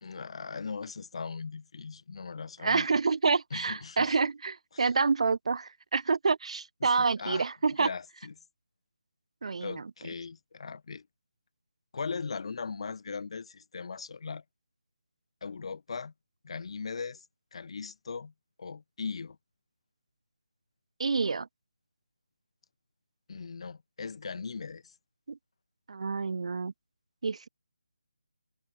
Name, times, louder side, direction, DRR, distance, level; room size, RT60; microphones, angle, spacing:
voice 1, 0.0-2.9 3.5-4.2 4.7-4.9 6.8-7.5 7.8-8.3 9.6-11.1 11.9-14.4 15.4-16.1 16.4-17.2 17.5-18.3 18.6-19.4 23.3-24.9, left 5 dB, 50° left, 2.7 m, -39 dB
voice 2, 2.6-7.9 9.4-9.9 21.0-21.5 25.3-25.4 25.9-26.7 27.2-27.5, right 4 dB, 55° right, 1.8 m, -28 dB
figure-of-eight pair, 160°, 4 cm